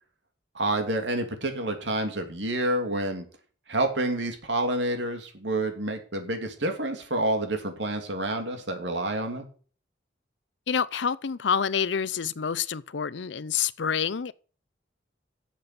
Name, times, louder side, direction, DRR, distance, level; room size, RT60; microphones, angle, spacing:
voice 1, 0.5-3.2 3.7-9.5, right 1 dB, 80° right, 2.8 m, -28 dB
voice 2, 10.7-14.3, left 7 dB, 80° left, 0.6 m, -27 dB
12.0 x 7.5 x 6.7 m
head